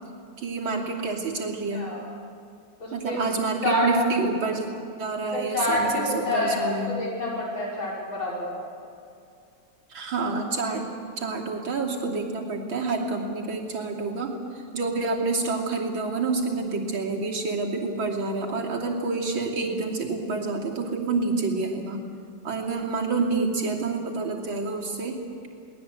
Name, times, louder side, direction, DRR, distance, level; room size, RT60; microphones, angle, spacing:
voice 1, 0.4-1.8 2.9-4.7 5.0-5.9 6.1-6.9 9.9-10.9 11.2-22.0 22.4-25.2, right 3 dB, 90° right, -1 dB, 3.6 m, -28 dB
voice 2, 1.7-2.1 2.8-3.3 3.6-3.9 5.3-8.5, left 1 dB, 85° left, -4 dB, 6.1 m, -27 dB
23.0 x 19.0 x 8.2 m, 2.5 s
omnidirectional pair, 2.1 m